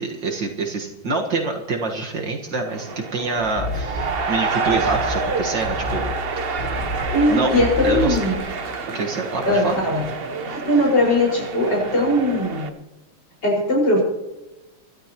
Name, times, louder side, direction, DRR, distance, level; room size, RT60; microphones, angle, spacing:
voice 1, 0.0-6.7 7.3-8.2 8.9-9.7, right 3 dB, 65° right, 1 dB, 2.2 m, -26 dB
sound 1, 2.7-12.7, right 4 dB, 40° right, 0.8 m, -28 dB
sound 2, 3.4-8.4, left 2 dB, 40° left, 4.7 m, -30 dB
voice 2, 7.1-8.3 9.5-10.0 10.5-12.7 13.4-14.0, left 1 dB, 60° left, -3 dB, 5.9 m, -19 dB
24.0 x 13.0 x 3.0 m, 1.0 s
omnidirectional pair, 2.2 m